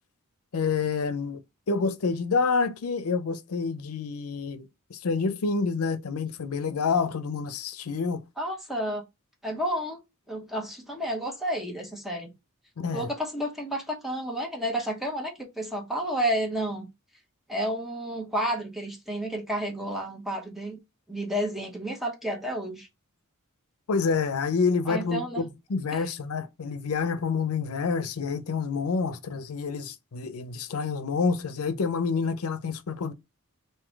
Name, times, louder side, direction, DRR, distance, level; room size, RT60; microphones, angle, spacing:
voice 1, 0.5-8.2 12.8-13.1 23.9-33.1, left 5 dB, 90° left, 0.6 m, -28 dB
voice 2, 8.4-9.0 9.4-10.0 10.3-12.3 12.9-16.9 17.5-20.8 21.1-22.9 24.9-25.4 25.9-26.1, right 1 dB, ahead, 1.0 m, -31 dB
3.7 x 2.7 x 4.5 m
head